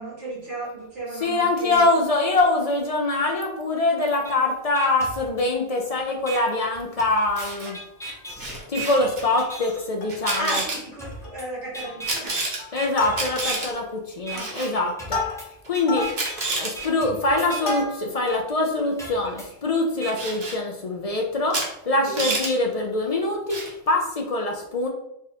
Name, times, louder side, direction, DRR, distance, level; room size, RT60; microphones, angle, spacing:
voice 1, 0.0-1.9 10.3-12.4 14.3-14.9 22.1-22.4, right 1 dB, 75° right, -5 dB, 1.9 m, -34 dB
voice 2, 1.2-7.8 8.7-10.6 12.7-15.2 15.7-16.1 16.5-21.6 21.9-24.9, left 2 dB, 50° left, 1 dB, 0.4 m, -24 dB
sound 1, 4.2-4.3 4.7-5.8 6.3-6.4 7.0-9.8 10.3-10.4 11.0-11.4 11.7-12.3 12.7-13.8 14.3-14.4 15.0-17.8 18.3-18.4 19.0-20.1, right 2 dB, 5° left, 0.6 m, -37 dB
Camera, 7.2-7.7 8.4-9.2 10.1-10.8 12.1-12.6 13.1-13.7 14.4-14.7 15.6-15.7 16.1-16.7 17.7-17.8 20.2-20.6 21.5-21.7 21.9-22.5 23.5-23.7, right 2 dB, 50° right, 1.1 m, -29 dB
Plucked string instrument, 7.4-8.2 8.7-8.8 9.0-9.2 9.7-10.3 10.7-10.8 11.1-11.5 11.8-12.2 12.6-13.6 14.2-18.3 18.8-18.9, left 2 dB, 75° left, 1.3 m, -33 dB
3.7 x 2.5 x 4.2 m, 0.79 s
omnidirectional pair, 1.2 m